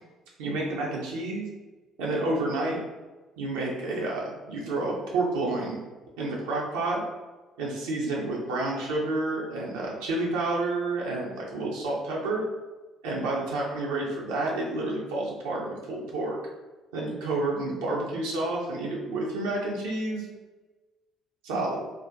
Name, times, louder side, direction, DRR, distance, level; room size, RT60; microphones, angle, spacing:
voice 1, 0.4-1.4 2.0-2.8 3.4-5.8 6.2-7.0 7.6-12.4 13.0-16.4 16.9-20.3 21.4-21.8, right 2 dB, 80° right, -3 dB, 0.4 m, -29 dB
2.5 x 2.1 x 2.4 m, 1.2 s
hypercardioid pair, 50°, 0 cm